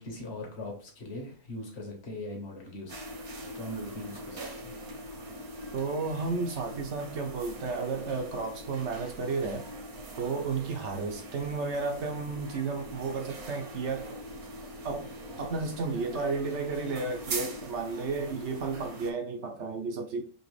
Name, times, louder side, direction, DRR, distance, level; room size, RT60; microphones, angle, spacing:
voice 1, 0.0-3.1 3.5-4.7, left 1 dB, 50° left, 1.4 m, -40 dB
sound 1, 2.9-19.1, right 1 dB, 80° right, 1.5 m, -42 dB
voice 2, 5.7-9.7 10.2-14.2 14.8-20.2, right 4 dB, 65° right, 0.8 m, -33 dB
4.0 x 2.8 x 3.1 m
omnidirectional pair, 1.5 m